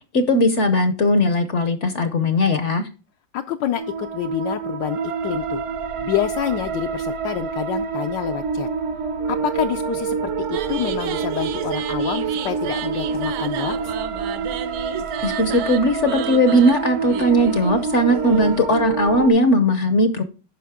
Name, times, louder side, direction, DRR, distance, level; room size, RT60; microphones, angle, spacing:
voice 1, 0.1-2.8 15.2-20.2, equal, 55° left, 9 dB, 0.9 m, -18 dB
voice 2, 3.3-5.6 6.0-8.7 9.3-13.9, left 12 dB, 75° left, 5 dB, 1.2 m, -27 dB
sound 1, 3.8-19.3, right 5 dB, 50° right, 1.0 m, -27 dB
sound 2, 10.5-18.6, right 11 dB, 75° right, 1.1 m, -33 dB
10.0 x 5.9 x 3.5 m, 0.34 s
omnidirectional pair, 2.0 m